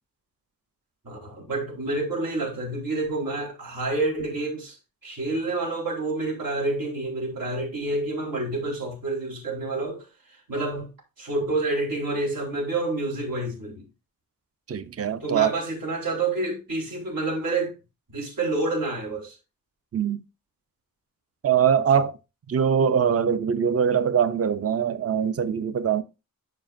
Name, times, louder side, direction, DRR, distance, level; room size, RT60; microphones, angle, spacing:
voice 1, 1.0-4.8 5.0-13.9 15.2-17.7 18.1-19.4 21.9-22.0, right 2 dB, 75° right, 4.1 m, -28 dB
voice 2, 14.7-15.5 19.9-20.2 21.4-22.1 22.5-26.0, right 7 dB, 45° right, 0.6 m, -22 dB
12.0 x 5.1 x 2.6 m
wide cardioid pair, 155°, 34 cm